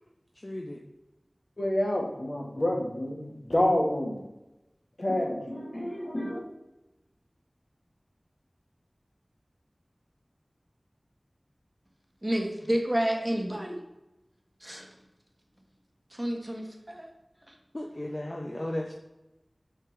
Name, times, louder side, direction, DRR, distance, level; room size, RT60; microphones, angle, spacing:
voice 1, 0.4-0.8 17.7-18.9, left 1 dB, 40° left, 0 dB, 0.8 m, -35 dB
voice 2, 1.6-4.2 5.0-6.4, left 1 dB, 60° left, -1 dB, 1.8 m, -28 dB
voice 3, 12.2-13.8 14.6-14.9 16.1-17.1, right 1 dB, 15° right, 1 dB, 1.4 m, -29 dB
6.7 x 4.4 x 4.7 m, 0.96 s
wide cardioid pair, 40°, 0 cm